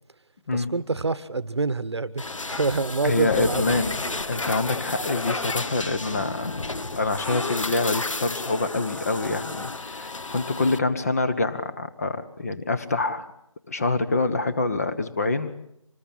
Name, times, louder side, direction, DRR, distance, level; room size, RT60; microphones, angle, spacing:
voice 1, 0.5-3.6 4.1-4.2, right 3 dB, 50° right, 16 dB, 1.2 m, -27 dB
sound 1, 2.2-10.8, left 3 dB, 65° left, 1.4 m, -32 dB
voice 2, 3.0-4.0 4.3-6.6 7.0-13.3 13.7-15.5, left 3 dB, 25° left, 10 dB, 1.2 m, -26 dB
25.5 x 20.0 x 8.8 m, 0.75 s
figure-of-eight pair, 165°, 17 cm